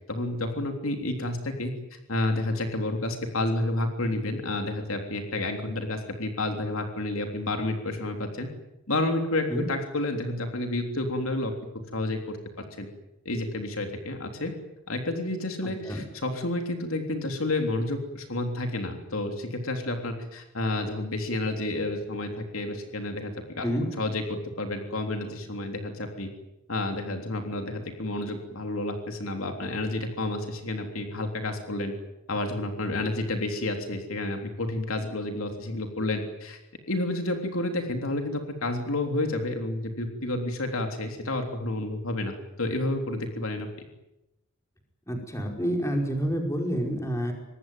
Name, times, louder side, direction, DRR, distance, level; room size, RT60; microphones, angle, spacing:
voice 1, 0.1-8.5 8.9-11.5 11.9-12.4 12.8-12.9 13.3-14.5 14.9-23.7 24.0-24.2 24.6-26.3 26.7-31.9 32.3-36.6 36.9-43.7, left 2 dB, 70° left, 4 dB, 3.5 m, -30 dB
voice 2, 15.6-16.0 23.6-23.9 45.1-47.3, equal, 15° left, 2 dB, 5.1 m, -28 dB
25.0 x 20.0 x 9.3 m, 0.93 s
head